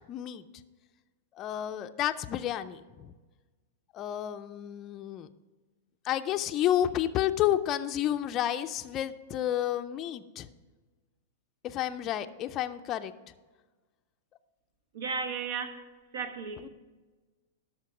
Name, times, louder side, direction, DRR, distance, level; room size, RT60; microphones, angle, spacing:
voice 1, 0.1-0.4 1.4-3.1 3.9-5.3 6.0-10.5 11.6-13.1 16.6-16.7, left 11 dB, 30° left, 8 dB, 0.4 m, -30 dB
voice 2, 14.9-15.8 16.1-16.7, right 5 dB, 75° right, 7 dB, 1.3 m, -34 dB
12.0 x 5.9 x 4.8 m, 1.3 s
supercardioid pair, 150°, 0 cm